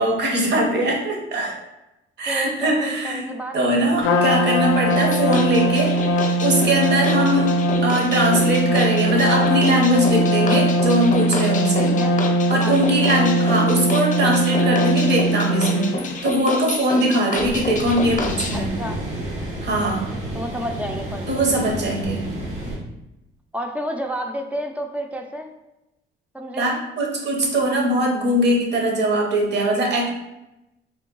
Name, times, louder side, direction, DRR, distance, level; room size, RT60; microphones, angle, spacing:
voice 1, 0.0-1.6 2.2-3.3 3.5-5.9 6.4-7.5 7.8-11.9 12.5-16.0 16.2-18.7 19.6-20.1 21.3-22.2 26.5-30.1, right 1 dB, 60° right, 0 dB, 1.0 m, -21 dB
voice 2, 2.3-3.6 7.2-7.5 11.8-12.2 12.6-13.4 18.5-19.0 20.3-21.5 23.5-25.5 26.3-26.8, equal, 5° right, 3 dB, 0.4 m, -31 dB
Trumpet, 4.0-16.2, right 1 dB, 80° left, 0.4 m, -21 dB
sound 1, 4.9-18.6, left 3 dB, 40° left, 0.6 m, -29 dB
sound 2, 17.3-22.8, right 1 dB, 85° right, 1.4 m, -30 dB
3.7 x 2.3 x 3.7 m, 0.93 s
cardioid pair, 90°, 20 cm